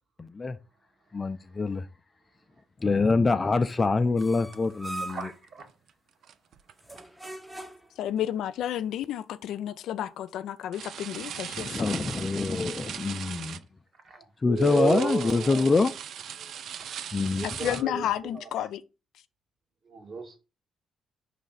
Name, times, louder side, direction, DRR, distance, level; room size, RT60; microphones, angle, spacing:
voice 1, 0.2-0.6 1.1-1.8 2.8-5.3 11.6-13.6 14.4-15.9 17.1-17.4, left 3 dB, 30° left, 0.5 m, -25 dB
sound 1, 4.2-5.4 6.8-8.0, right 2 dB, 5° right, 0.8 m, -40 dB
sound 2, 4.2-4.3 4.5-4.7 5.1-5.2 5.5-5.9 6.2-7.0 8.6-8.7 10.7-13.6 14.6-17.8, right 8 dB, 70° right, 0.4 m, -39 dB
voice 2, 5.1-5.7 14.0-15.8 16.4-16.5 17.4-18.5 19.8-20.4, right 4 dB, 50° right, 1.7 m, -32 dB
voice 3, 8.0-11.9 17.6-18.8, left 11 dB, 80° left, 0.4 m, -31 dB
5.1 x 3.3 x 5.6 m
cardioid pair, 90°, 0 cm